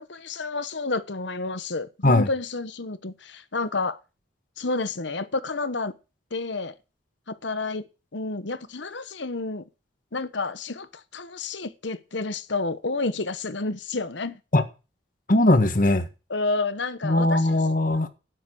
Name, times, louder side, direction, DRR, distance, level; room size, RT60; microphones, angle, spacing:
voice 1, 0.0-4.0 4.6-5.9 6.3-6.8 7.3-9.6 10.1-14.4 16.3-17.5, left 3 dB, 70° left, 1.2 m, -30 dB
voice 2, 15.3-16.1 17.0-18.1, left 1 dB, 45° left, 1.6 m, -20 dB
11.5 x 10.0 x 6.3 m
head